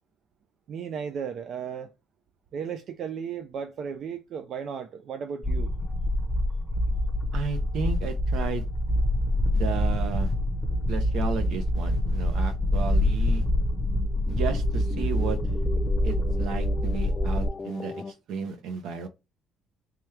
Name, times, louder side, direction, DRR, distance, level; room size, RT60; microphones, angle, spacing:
voice 1, 0.7-1.9 2.5-5.7, right 7 dB, 55° right, 0.4 m, -35 dB
sound 1, 5.4-17.5, left 1 dB, 5° right, 0.9 m, -26 dB
voice 2, 7.3-8.6 9.5-10.3 10.9-13.4 14.3-15.4 16.0-19.1, right 6 dB, 70° right, 0.8 m, -33 dB
sound 2, 11.8-18.1, left 4 dB, 25° left, 0.3 m, -40 dB
3.5 x 3.0 x 3.2 m
cardioid pair, 140°, 0 cm